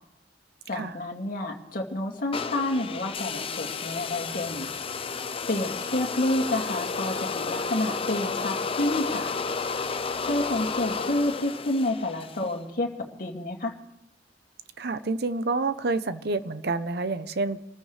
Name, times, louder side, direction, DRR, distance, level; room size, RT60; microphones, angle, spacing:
voice 1, 0.7-4.7 5.5-9.3 10.2-12.9 13.2-13.7, left 1 dB, 50° left, 1 dB, 2.4 m, -29 dB
sound 1, 2.3-12.5, left 5 dB, 30° left, 0.7 m, -32 dB
voice 2, 14.8-17.6, right 3 dB, 65° right, 12 dB, 0.9 m, -28 dB
28.0 x 14.5 x 3.3 m, 0.81 s
head